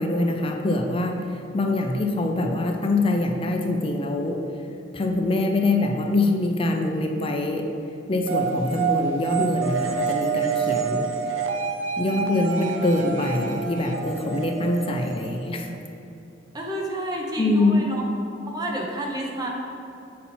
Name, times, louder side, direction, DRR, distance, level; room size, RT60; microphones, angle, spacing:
voice 1, 0.0-4.4 4.9-7.7 8.1-11.1 12.0-15.7 17.4-17.8, left 2 dB, 30° left, 3 dB, 0.5 m, -24 dB
sound 1, 8.3-15.8, right 6 dB, 80° right, 0.6 m, -28 dB
voice 2, 16.5-18.0 18.5-19.5, right 1 dB, 20° right, -1 dB, 0.8 m, -30 dB
7.0 x 4.3 x 4.3 m, 2.9 s
head